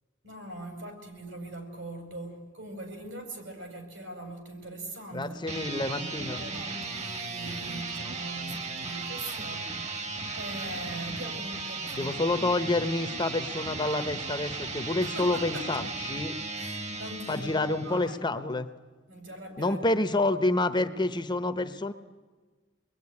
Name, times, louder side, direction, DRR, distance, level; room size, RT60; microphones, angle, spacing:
voice 1, 0.2-12.3 15.0-15.8 16.5-18.1 19.1-19.8, right 1 dB, 75° right, 5 dB, 5.5 m, -41 dB
voice 2, 5.1-6.4 11.9-16.4 17.3-18.7 19.6-21.9, left 2 dB, 25° left, 10 dB, 0.9 m, -28 dB
sound 1, 5.4-18.1, right 3 dB, 35° right, 1.5 m, -36 dB
25.0 x 21.5 x 9.7 m, 1.4 s
head